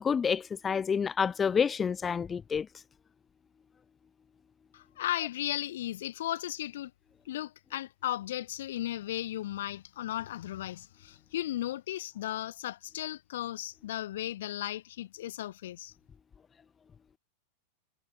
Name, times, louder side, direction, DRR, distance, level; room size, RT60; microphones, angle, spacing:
voice 1, 0.0-2.7, left 6 dB, 20° left, 0.6 m, -28 dB
voice 2, 4.7-6.9 7.3-15.9, left 13 dB, 55° left, 0.8 m, -35 dB
figure-of-eight pair, 90°, 0 cm